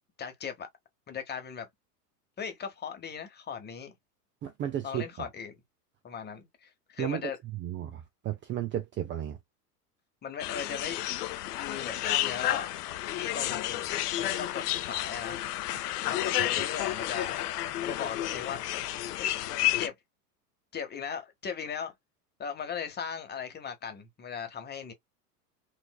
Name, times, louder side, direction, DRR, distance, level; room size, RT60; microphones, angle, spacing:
voice 1, 0.2-0.7 1.1-1.7 2.4-4.0 4.8-5.5 6.0-7.4 10.2-11.0 11.5-12.7 13.1-15.4 16.1-17.4 17.8-18.6 19.2-19.4 19.8-19.9 20.7-21.9 22.4-24.9, left 7 dB, 20° left, 1.0 m, -38 dB
voice 2, 4.4-5.3 7.0-7.3 7.6-9.4, right 11 dB, 25° right, 0.5 m, -34 dB
sound 1, 10.4-19.9, left 14 dB, 70° left, 0.7 m, -31 dB
4.4 x 2.6 x 2.2 m
hypercardioid pair, 95°, 48 cm